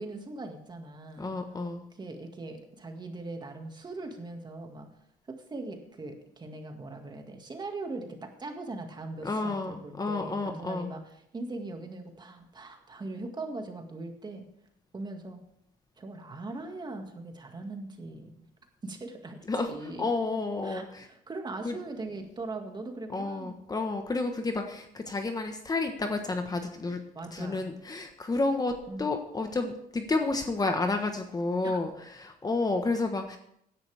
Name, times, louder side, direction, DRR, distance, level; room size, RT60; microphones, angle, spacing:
voice 1, 0.0-1.3 1.9-4.9 5.3-14.5 14.9-15.4 16.0-18.5 18.8-19.4 19.7-20.1 20.6-23.6 27.2-27.7 28.9-29.1 31.6-31.8, right 2 dB, 25° right, 4 dB, 2.1 m, -40 dB
voice 2, 1.2-1.8 9.2-10.9 19.5-19.7 20.0-21.1 21.6-21.8 23.1-27.0 27.3-33.4, left 3 dB, 20° left, 5 dB, 1.3 m, -30 dB
16.0 x 11.0 x 3.5 m, 0.73 s
cardioid pair, 110°, 17 cm